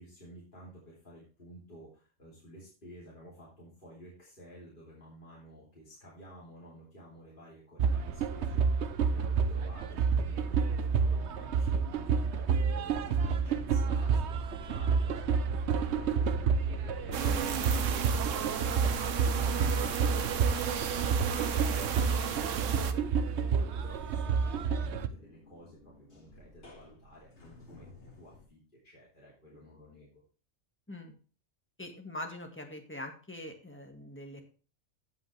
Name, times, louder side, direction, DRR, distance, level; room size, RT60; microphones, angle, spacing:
voice 1, 0.0-18.8 19.2-30.2, equal, 40° left, -6 dB, 3.2 m, -52 dB
sound 1, 7.8-25.1, right 6 dB, 65° right, 1.0 m, -29 dB
sound 2, 13.1-28.5, left 7 dB, 60° left, 2.4 m, -50 dB
sound 3, 17.1-22.9, right 8 dB, 80° right, 1.2 m, -34 dB
voice 2, 31.8-34.4, left 1 dB, 10° left, 3 dB, 1.7 m, -43 dB
16.0 x 5.4 x 3.3 m, 0.37 s
omnidirectional pair, 1.3 m